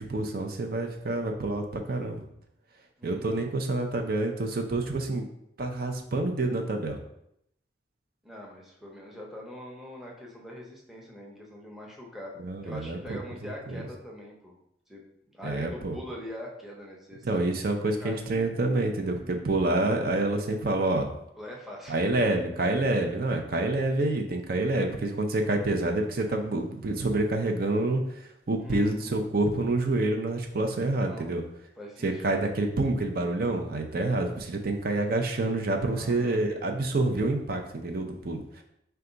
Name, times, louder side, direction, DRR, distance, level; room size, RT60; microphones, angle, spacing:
voice 1, 0.0-2.2 3.0-5.3 5.6-7.0 12.4-13.8 15.4-16.0 17.2-21.1 21.9-28.0 28.5-31.4 32.0-38.6, right 2 dB, 55° right, 3 dB, 0.6 m, -27 dB
voice 2, 3.0-3.5 8.2-12.3 12.6-14.5 14.9-15.0 15.3-17.4 18.0-18.3 21.4-22.0 28.6-29.2 31.1-31.3 31.8-32.2 35.9-36.4, left 1 dB, ahead, -2 dB, 0.7 m, -43 dB
4.7 x 2.3 x 3.9 m, 0.76 s
head